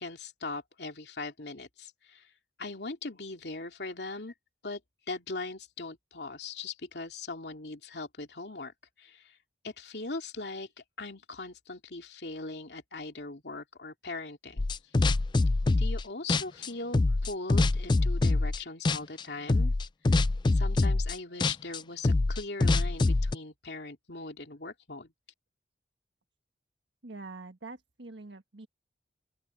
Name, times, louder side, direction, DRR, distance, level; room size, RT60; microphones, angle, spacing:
voice 1, 0.0-2.3 2.6-4.3 4.6-4.8 5.1-9.4 9.6-10.7 11.0-14.9 15.8-19.7 20.1-20.2 20.5-25.1, left 3 dB, 70° left, 2.7 m, -40 dB
sound 1, 14.6-16.0 16.3-18.6 18.8-19.2 19.5-23.3, left 2 dB, 25° left, 0.4 m, -25 dB
voice 2, 27.0-28.7, right 3 dB, 85° right, 1.5 m, -45 dB
open air
head